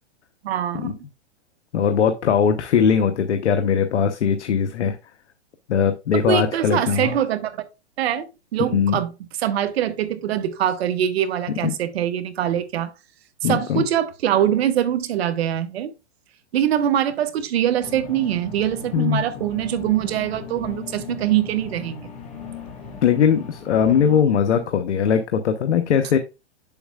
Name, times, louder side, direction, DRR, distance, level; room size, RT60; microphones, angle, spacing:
voice 1, 0.4-1.0 6.1-7.5 8.0-8.3 8.5-9.1 9.4-12.9 13.4-15.9 16.5-22.1, right 10 dB, 65° right, 1.3 m, -23 dB
voice 2, 1.7-5.0 5.7-7.1 8.6-9.0 11.6-11.7 13.4-13.8 18.9-19.2 23.0-26.2, left 7 dB, 90° left, 0.9 m, -20 dB
sound 1, 17.8-24.2, left 6 dB, 20° left, 1.9 m, -37 dB
8.1 x 7.0 x 2.4 m
hypercardioid pair, 140°, 34 cm